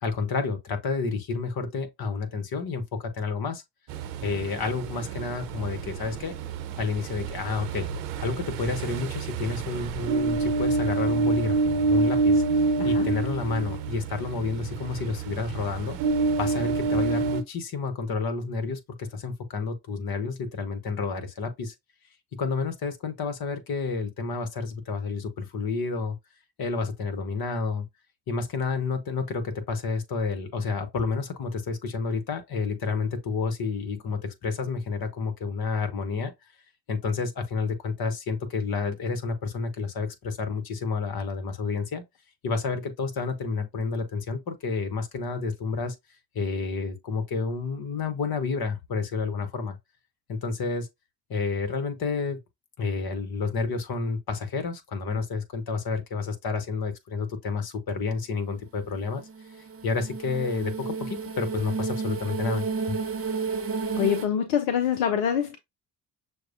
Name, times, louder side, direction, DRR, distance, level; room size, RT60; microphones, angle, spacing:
voice 1, 0.0-3.6 4.2-6.3 6.8-7.9 8.2-16.0 16.4-21.7 22.3-26.2 26.6-27.9 28.3-36.3 36.9-42.0 42.4-45.9 46.3-49.8 50.3-50.9 51.3-52.4 52.8-59.3 59.8-63.0, left 4 dB, 45° left, 1.2 m, -30 dB
Ocean, 3.9-17.4, right 3 dB, 70° right, 0.8 m, -27 dB
sound 1, 58.8-64.3, right 5 dB, 25° right, 0.9 m, -32 dB
voice 2, 63.9-65.6, left 9 dB, 70° left, 0.7 m, -25 dB
6.4 x 2.2 x 2.5 m
hypercardioid pair, 45°, 50 cm